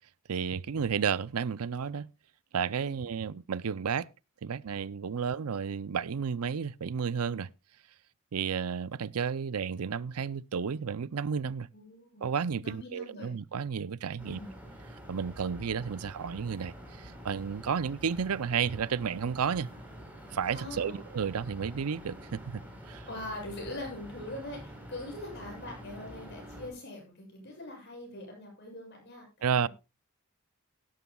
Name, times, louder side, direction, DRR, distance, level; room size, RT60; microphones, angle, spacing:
voice 1, 0.3-2.1 2.5-4.1 4.4-7.5 8.3-11.7 12.2-14.4 15.1-19.7 20.3-23.1 29.4-29.7, right 6 dB, 90° right, 0.5 m, -32 dB
voice 2, 11.7-12.2 12.6-13.3 14.2-14.6 20.5-21.0 23.1-29.7, left 1 dB, 50° left, 8.0 m, -43 dB
sound 1, 14.2-26.7, equal, 5° right, 4.0 m, -47 dB
17.5 x 12.5 x 2.3 m
head